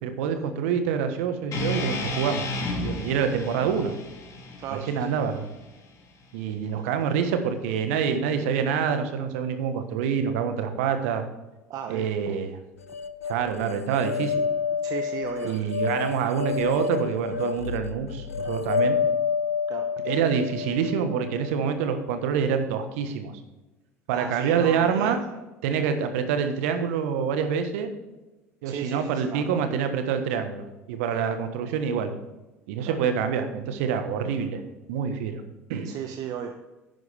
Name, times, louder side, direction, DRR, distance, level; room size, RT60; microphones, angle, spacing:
voice 1, 0.0-2.5 2.8-3.9 4.7-5.4 6.3-11.2 11.9-12.6 13.2-14.3 15.4-19.0 20.0-23.3 24.1-25.2 25.6-27.9 28.6-32.1 32.7-34.6 34.9-35.4 35.7-35.9, right 7 dB, 70° right, 8 dB, 1.4 m, -26 dB
sound 1, 1.5-5.7, left 2 dB, 45° left, 2.8 m, -32 dB
voice 2, 4.6-5.2 11.7-12.1 14.8-15.6 19.7-19.9 24.1-25.2 28.6-29.6 32.8-33.0 35.8-36.6, right 8 dB, 55° right, 5 dB, 0.9 m, -35 dB
sound 2, 12.9-22.1, left 6 dB, 85° left, 0.5 m, -29 dB
11.0 x 9.4 x 3.5 m, 1.1 s
hypercardioid pair, 65°, 8 cm